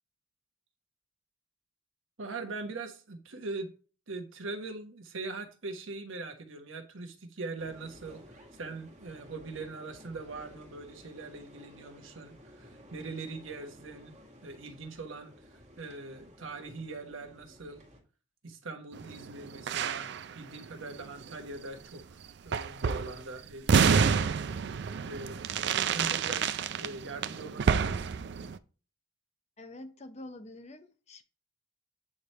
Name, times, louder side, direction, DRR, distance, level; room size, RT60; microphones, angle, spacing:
voice 1, 2.2-3.7 4.1-17.8 18.4-20.1 20.3-22.2 22.4-24.3 25.0-28.2, right 3 dB, 75° right, 1.1 m, -42 dB
sound 1, 7.6-18.0, equal, 35° right, 1.8 m, -54 dB
sound 2, 18.9-21.3 21.6-21.7 22.5-23.2 23.7-28.6, right 6 dB, 55° right, 0.4 m, -29 dB
voice 2, 29.6-31.2, left 2 dB, 35° left, 0.6 m, -46 dB
8.7 x 3.3 x 4.3 m
head